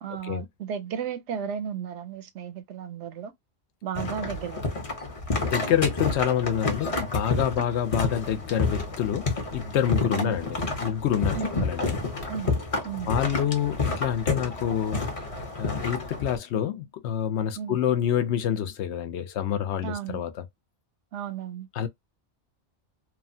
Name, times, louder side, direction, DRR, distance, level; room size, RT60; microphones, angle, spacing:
voice 1, 0.0-3.3 3.8-4.6 10.1-10.4 11.3-11.7 12.3-12.6 12.8-13.1 17.6-17.8 19.8-20.2 21.1-21.7, right 8 dB, 80° right, 0.9 m, -34 dB
sound 1, 3.9-16.4, left 3 dB, 35° left, 0.7 m, -30 dB
voice 2, 5.4-12.0 13.1-15.0 15.6-20.4 21.7-21.9, left 9 dB, 75° left, 0.8 m, -27 dB
3.0 x 2.2 x 2.6 m
omnidirectional pair, 1.2 m